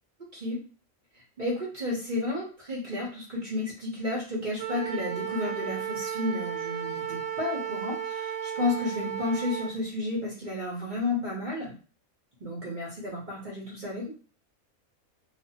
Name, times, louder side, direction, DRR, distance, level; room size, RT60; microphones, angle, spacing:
voice 1, 1.4-11.7 12.4-14.1, left 2 dB, 40° right, -4 dB, 0.8 m, -32 dB
Wind instrument woodwind instrument, 4.6-9.7, right 8 dB, 75° right, 1.1 m, -34 dB
2.5 x 2.4 x 2.7 m, 0.38 s
omnidirectional pair, 1.5 m